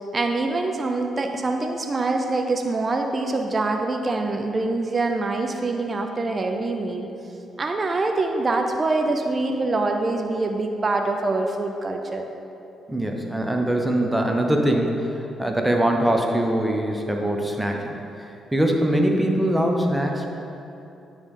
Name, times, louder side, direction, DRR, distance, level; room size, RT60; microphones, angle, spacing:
voice 1, 0.1-7.1 7.6-12.3, right 2 dB, 35° right, 3 dB, 0.6 m, -24 dB
voice 2, 12.9-17.9 18.5-20.3, right 1 dB, 10° right, 2 dB, 1.0 m, -22 dB
9.7 x 3.5 x 5.5 m, 2.9 s
hypercardioid pair, 45°, 0 cm